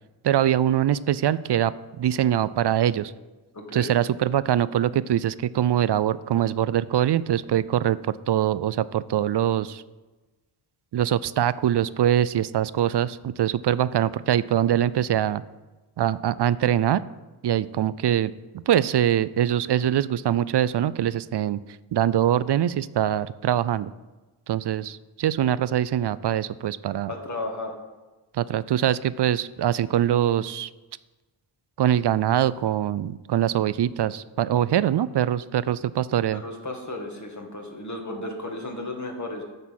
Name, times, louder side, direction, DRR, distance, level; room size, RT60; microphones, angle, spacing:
voice 1, 0.2-3.1 3.7-9.8 10.9-15.4 16.0-17.0 17.4-21.6 21.9-23.9 24.5-27.1 28.3-30.7 31.8-36.4, right 11 dB, 55° right, 17 dB, 0.5 m, -23 dB
voice 2, 3.5-3.9 27.1-27.7 36.3-39.4, left 2 dB, 35° left, 2 dB, 2.0 m, -34 dB
12.0 x 4.1 x 7.3 m, 1.2 s
cardioid pair, 55°, 49 cm